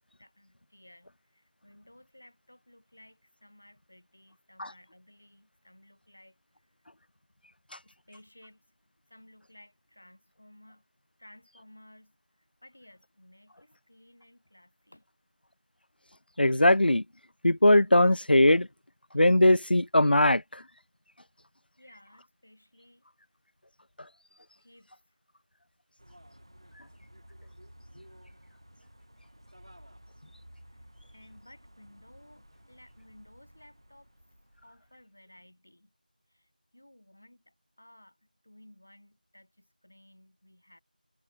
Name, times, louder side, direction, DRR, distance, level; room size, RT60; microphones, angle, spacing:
voice 1, 0.0-6.8 7.8-8.7 9.1-10.8 11.2-15.0 21.8-23.1 24.6-24.9 30.7-34.1 34.6-35.9 36.3-40.8, left 1 dB, 5° left, 2.1 m, -57 dB
voice 2, 16.4-17.0 17.4-18.7 19.1-20.4, left 1 dB, 85° left, 0.5 m, -20 dB
sound 1, 26.0-35.0, equal, 30° right, 3.3 m, -55 dB
figure-of-eight pair, 180°, 5 cm